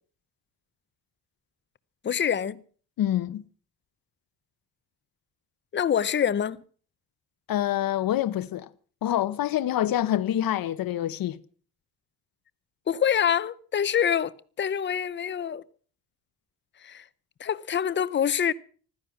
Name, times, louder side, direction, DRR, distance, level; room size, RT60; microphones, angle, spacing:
voice 1, 2.0-2.6 5.7-6.6 12.9-15.6 16.8-17.0 17.4-18.5, left 8 dB, 30° left, 0.6 m, -25 dB
voice 2, 3.0-3.4 7.5-8.7 9.0-11.4, left 12 dB, 65° left, 0.9 m, -26 dB
15.5 x 13.0 x 5.8 m
cardioid pair, 180°, 37 cm